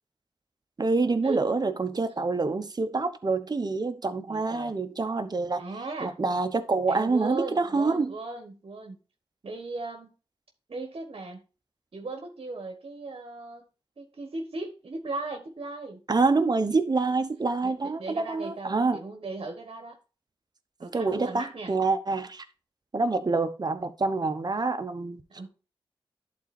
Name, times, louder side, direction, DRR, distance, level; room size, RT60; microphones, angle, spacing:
voice 1, 0.8-5.7 6.0-8.1 16.1-19.0 20.9-22.4 22.9-25.2, right 3 dB, 45° right, 1.0 m, -26 dB
voice 2, 4.3-4.7 5.6-6.2 6.9-9.0 9.4-10.1 10.7-11.4 11.9-13.7 14.0-16.0 17.6-20.0 20.8-21.7 25.3-25.5, right 3 dB, 65° right, 1.3 m, -37 dB
11.0 x 4.2 x 4.3 m
wide cardioid pair, 70°, 10 cm